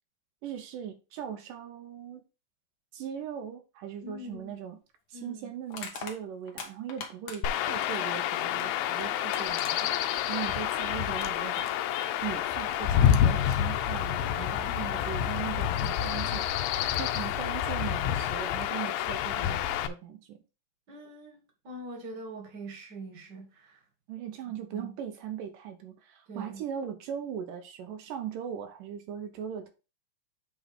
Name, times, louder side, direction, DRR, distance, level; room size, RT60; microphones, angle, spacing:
voice 1, 0.4-2.2 2.9-4.8 5.1-9.9 10.3-11.7 12.2-20.4 24.1-29.7, right 9 dB, 75° right, 2.5 m, -39 dB
voice 2, 4.0-4.6 5.1-5.5 14.7-15.0 20.9-23.8 24.5-25.0 26.3-26.6, right 1 dB, 40° right, 1.9 m, -44 dB
Crushing, 4.3-4.5 5.7-7.7 8.9-9.0 9.3-9.7, left 6 dB, 65° left, 1.3 m, -40 dB
Chirp tweet / Wind / Stream, 7.4-19.9, left 10 dB, 85° left, 2.4 m, -28 dB
8.1 x 3.9 x 5.1 m
omnidirectional pair, 3.9 m